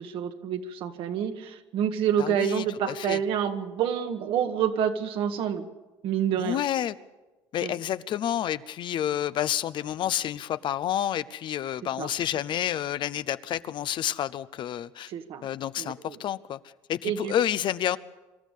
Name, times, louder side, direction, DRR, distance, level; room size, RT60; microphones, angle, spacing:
voice 1, 0.0-5.7 6.0-6.6 7.6-7.7 12.0-12.1 15.1-15.5 15.8-16.2 17.0-17.3, right 9 dB, 70° right, 6 dB, 1.8 m, -28 dB
voice 2, 2.2-3.2 6.4-7.0 7.5-15.1 15.4-16.6 16.9-18.0, left 11 dB, 55° left, 15 dB, 0.7 m, -29 dB
25.5 x 13.0 x 8.4 m, 1.1 s
supercardioid pair, 95°, 10 cm